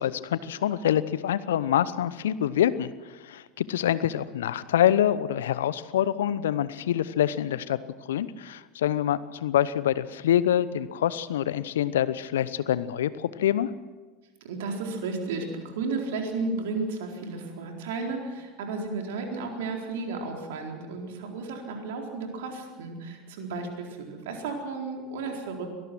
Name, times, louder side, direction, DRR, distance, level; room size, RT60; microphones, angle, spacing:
voice 1, 0.0-2.9 3.2-7.8 8.1-13.7, left 11 dB, 75° left, 17 dB, 0.8 m, -26 dB
voice 2, 14.4-25.7, right 3 dB, 65° right, 2 dB, 4.2 m, -33 dB
24.0 x 19.0 x 6.2 m, 1.3 s
figure-of-eight pair, 75°, 0 cm